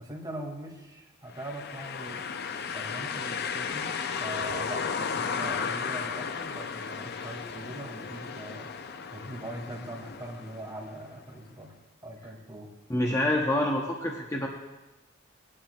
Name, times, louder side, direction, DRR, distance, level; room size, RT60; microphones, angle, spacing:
voice 1, 0.0-2.5 2.7-8.7 9.1-11.7 12.0-12.7, right 1 dB, 15° right, -2 dB, 2.0 m, -41 dB
sound 1, 1.4-11.2, left 6 dB, 45° left, 0.5 m, -34 dB
voice 2, 12.9-14.5, left 1 dB, 15° left, -1 dB, 0.7 m, -27 dB
17.5 x 10.5 x 2.3 m, 1.1 s
head